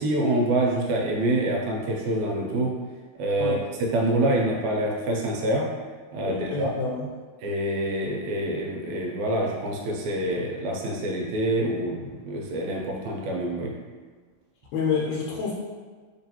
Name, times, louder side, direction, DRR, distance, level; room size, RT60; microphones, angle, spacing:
voice 1, 0.0-2.7 3.2-5.7 6.1-6.7 7.4-13.7, right 1 dB, 80° right, -1 dB, 1.9 m, -26 dB
voice 2, 6.2-7.1 14.7-15.5, left 5 dB, 75° left, -3 dB, 1.8 m, -28 dB
4.2 x 3.0 x 2.8 m, 1.5 s
omnidirectional pair, 3.4 m